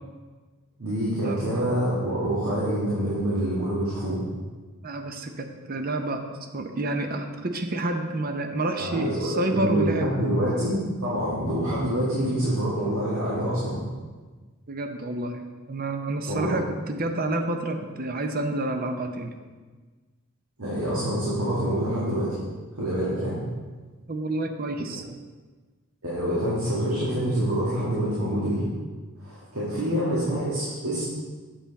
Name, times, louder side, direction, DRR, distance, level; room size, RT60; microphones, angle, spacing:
voice 1, 0.8-4.2 8.8-13.8 16.3-16.5 20.6-22.3 22.8-23.4 26.0-28.7 29.2-31.0, right 1 dB, 85° right, -8 dB, 2.1 m, -26 dB
voice 2, 4.8-6.3 6.5-10.2 14.7-19.4 24.1-25.1, right 2 dB, 40° right, 6 dB, 0.7 m, -29 dB
7.9 x 7.2 x 4.1 m, 1.4 s
head